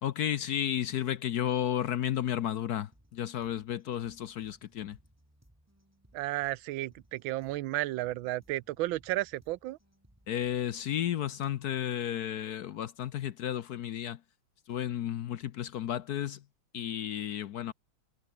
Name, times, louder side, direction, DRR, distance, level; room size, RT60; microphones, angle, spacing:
voice 1, 0.0-5.0 10.3-14.2 14.7-16.4 16.7-17.7, left 11 dB, 65° left, 1.1 m, -33 dB
sound 1, 2.9-10.9, right 1 dB, 5° right, 4.0 m, -65 dB
voice 2, 6.1-9.8, right 16 dB, 80° right, 1.4 m, -33 dB
omnidirectional pair, 2.2 m